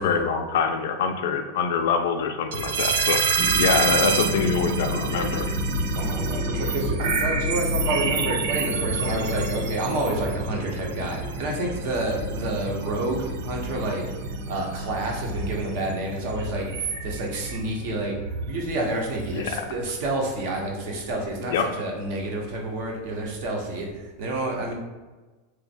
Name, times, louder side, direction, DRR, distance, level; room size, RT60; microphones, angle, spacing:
voice 1, 0.0-5.5 19.3-19.6 21.5-21.6, left 6 dB, 75° left, 5 dB, 0.3 m, -25 dB
sound 1, 2.5-19.5, right 5 dB, 75° right, 0.4 m, -29 dB
sound 2, 3.4-19.3, equal, 5° right, 0.6 m, -32 dB
voice 2, 5.9-14.0 14.5-18.1 18.5-24.7, right 1 dB, 60° right, 0 dB, 0.9 m, -29 dB
3.1 x 2.1 x 4.2 m, 1.2 s
supercardioid pair, 140°, 0 cm